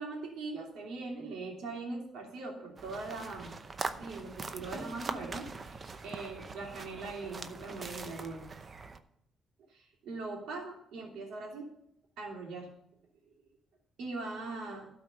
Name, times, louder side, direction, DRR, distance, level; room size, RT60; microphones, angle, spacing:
voice 1, 0.0-3.6 3.9-8.5 9.7-11.7 12.2-12.7 14.0-14.9, right 3 dB, 80° right, 0 dB, 2.8 m, -41 dB
sound 1, 2.8-9.0, right 4 dB, 35° right, 0.7 m, -42 dB
12.5 x 4.7 x 6.8 m, 0.74 s
cardioid pair, 90°, 0 cm